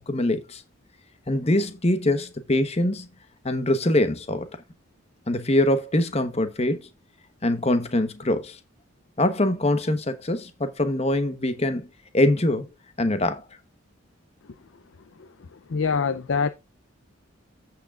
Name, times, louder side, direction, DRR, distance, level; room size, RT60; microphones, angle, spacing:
voice 1, 0.1-0.6 1.3-3.1 3.4-4.5 5.3-6.9 7.4-8.6 9.2-11.9 12.1-12.7 13.0-13.4, left 1 dB, 30° left, 1.0 m, -23 dB
voice 2, 15.2-16.5, left 5 dB, 65° left, 0.5 m, -26 dB
15.0 x 5.9 x 2.4 m
head